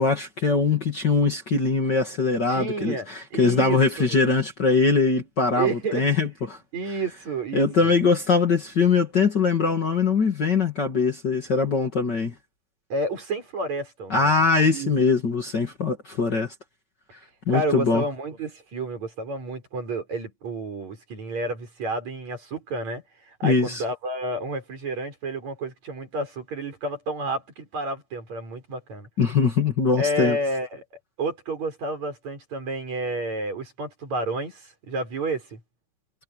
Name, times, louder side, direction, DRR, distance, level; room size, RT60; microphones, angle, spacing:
voice 1, 0.0-6.6 7.5-12.3 14.1-16.5 17.5-18.0 23.4-23.8 29.2-30.4, left 4 dB, 35° left, 2.5 m, -22 dB
voice 2, 2.5-4.1 5.6-6.0 6.7-7.9 12.9-14.4 14.7-14.9 17.5-23.0 23.4-29.1 30.0-30.8 31.2-35.6, right 2 dB, 60° right, 7.4 m, -30 dB
omnidirectional pair, 3.6 m